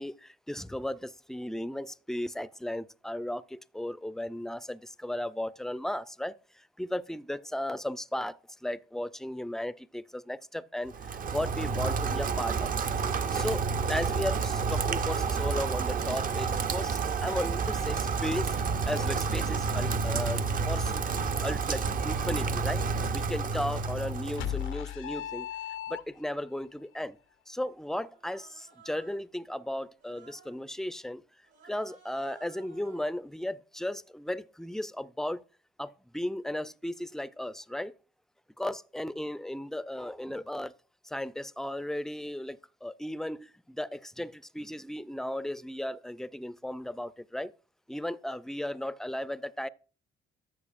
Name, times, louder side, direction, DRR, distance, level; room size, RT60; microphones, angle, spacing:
voice 1, 0.0-8.4 8.6-12.9 13.3-18.5 18.8-21.1 21.4-22.8 23.1-25.5 25.9-27.2 27.5-31.2 31.6-35.4 35.8-37.9 38.6-40.7 41.0-47.5 47.9-49.7, left 1 dB, ahead, 0.4 m, -35 dB
Rain, 10.9-24.7, right 5 dB, 45° right, 0.7 m, -30 dB
sound 1, 24.4-26.5, left 11 dB, 85° left, 0.7 m, -36 dB
Human voice, 28.0-29.3 30.0-30.6 31.4-33.2, right 5 dB, 80° right, 4.6 m, -57 dB
13.5 x 6.6 x 2.5 m
cardioid pair, 90°, 20 cm